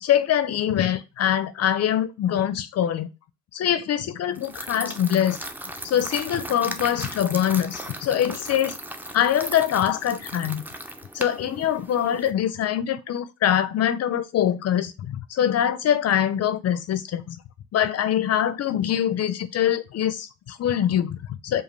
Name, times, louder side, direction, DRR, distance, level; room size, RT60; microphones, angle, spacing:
voice 1, 0.0-3.1 3.5-5.4 5.8-8.8 9.1-10.6 11.1-17.4 17.7-21.6, left 10 dB, 55° left, 0.5 m, -24 dB
sound 1, 4.4-12.3, right 1 dB, 5° right, 0.5 m, -37 dB
4.9 x 2.4 x 3.2 m
cardioid pair, 90°, 30 cm